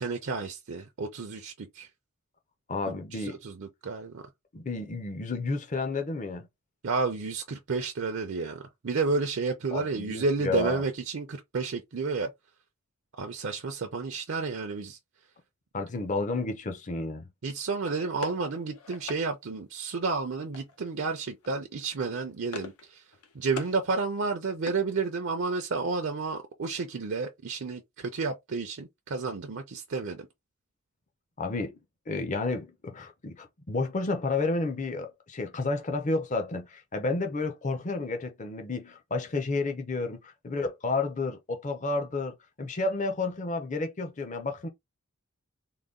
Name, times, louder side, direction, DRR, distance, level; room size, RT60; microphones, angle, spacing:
voice 1, 0.0-1.9 3.1-4.2 6.8-12.3 13.2-15.0 17.4-23.0 23.3-30.3, right 4 dB, 55° right, 0.5 m, -31 dB
voice 2, 2.7-3.4 4.5-6.5 9.7-10.8 15.7-17.2 31.4-31.7 32.1-44.7, left 3 dB, 35° left, 0.6 m, -31 dB
sound 1, 17.8-19.2 20.5-20.9 21.2-21.5 21.8-22.9 23.1-23.8 24.2-25.4, left 4 dB, 90° left, 0.9 m, -43 dB
3.8 x 2.2 x 3.6 m
head